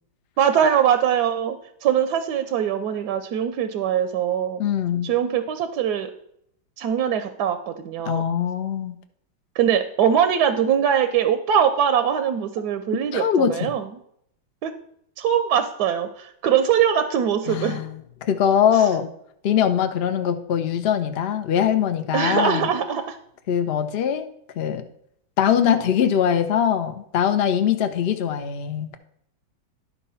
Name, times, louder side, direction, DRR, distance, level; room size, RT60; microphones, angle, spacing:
voice 1, 0.4-1.5 1.8-4.6 5.0-6.1 6.8-8.2 9.6-13.9 14.6-14.7 15.2-17.8 22.1-23.2, right 8 dB, 70° right, 10 dB, 1.0 m, -22 dB
voice 2, 4.6-5.1 8.0-9.0 13.1-13.7 17.5-19.1 19.4-22.7 23.5-24.3 24.6-24.8 25.4-29.0, left 8 dB, 85° left, 7 dB, 0.5 m, -22 dB
11.0 x 4.2 x 5.5 m, 0.71 s
omnidirectional pair, 2.1 m